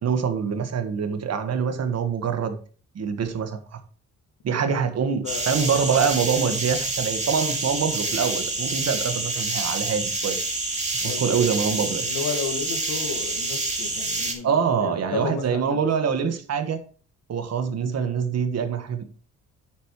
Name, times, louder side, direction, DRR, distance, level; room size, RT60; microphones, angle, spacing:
voice 1, 0.0-2.6 2.9-3.8 4.4-10.4 10.9-12.1 14.4-16.8 17.3-19.0, right 6 dB, 55° right, 8 dB, 1.6 m, -25 dB
voice 2, 5.2-5.8 11.0-11.3 12.0-15.8, left 6 dB, 90° left, 5 dB, 1.9 m, -33 dB
sound 1, 5.3-14.3, right 2 dB, 25° right, 2.5 m, -27 dB
9.3 x 8.2 x 3.2 m, 0.41 s
cardioid pair, 90°, 30 cm